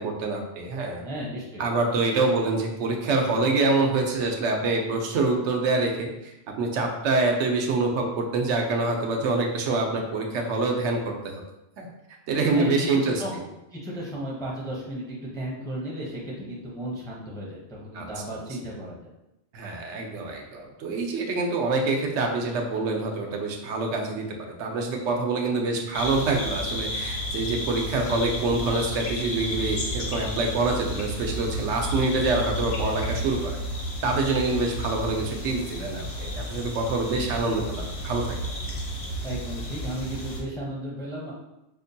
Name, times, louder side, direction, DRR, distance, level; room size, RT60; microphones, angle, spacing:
voice 1, 0.0-1.0 1.6-11.4 11.8-11.9 12.3-13.1 17.9-18.1 19.5-33.6 34.0-38.4, right 3 dB, 85° right, 2 dB, 0.9 m, -26 dB
voice 2, 1.0-1.6 12.5-13.4 13.7-19.1 25.6-26.0 39.2-41.3, right 1 dB, 5° left, -4 dB, 0.5 m, -34 dB
sound 1, 25.9-40.4, equal, 65° left, 1.0 m, -32 dB
5.0 x 2.2 x 2.6 m, 0.90 s
omnidirectional pair, 1.2 m